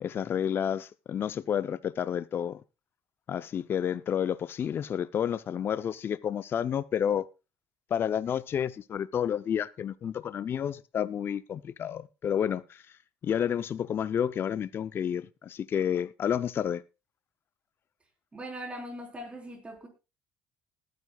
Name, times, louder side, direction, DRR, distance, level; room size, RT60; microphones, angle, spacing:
voice 1, 0.0-2.6 3.3-7.3 7.9-12.8 13.2-16.8, left 9 dB, 45° left, 0.6 m, -30 dB
voice 2, 18.3-19.9, equal, 20° right, 4.1 m, -40 dB
20.0 x 9.5 x 2.3 m
supercardioid pair, 90°, 5 cm